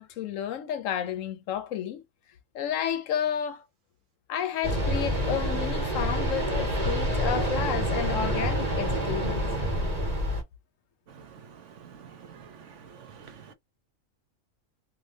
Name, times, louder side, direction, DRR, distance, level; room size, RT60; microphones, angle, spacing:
voice 1, 0.0-2.0 2.5-3.7 4.3-9.4, left 9 dB, 75° left, 1.0 m, -31 dB
sound 1, 4.6-10.4, equal, 30° right, 1.5 m, -27 dB
voice 2, 11.8-13.5, right 7 dB, 70° right, 1.1 m, -48 dB
3.2 x 2.6 x 2.7 m
omnidirectional pair, 1.4 m